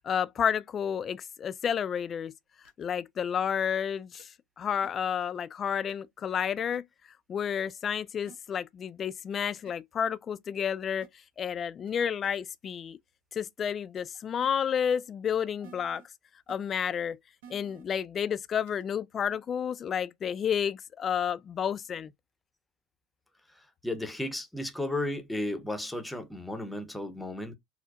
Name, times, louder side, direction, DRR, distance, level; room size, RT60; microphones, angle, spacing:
voice 1, 0.0-2.3 2.8-6.8 7.3-11.1 11.4-13.0 13.3-16.0 16.5-17.2 17.5-22.1, left 8 dB, 35° left, 0.3 m, -31 dB
sound 1, 2.6-2.8 4.2-4.3 4.8-4.9 5.9-6.0 6.7-6.8 8.3-8.4 9.7-9.8 11.0-11.1 11.9-12.0 12.2-12.3 14.0-14.1 14.4-14.5 15.6-16.0 16.5-16.6 17.4-17.8 18.7-18.8, right 7 dB, 70° right, 0.9 m, -51 dB
voice 2, 23.8-27.6, left 1 dB, 5° left, 0.7 m, -34 dB
4.3 x 2.0 x 2.4 m
hypercardioid pair, 85°, 0 cm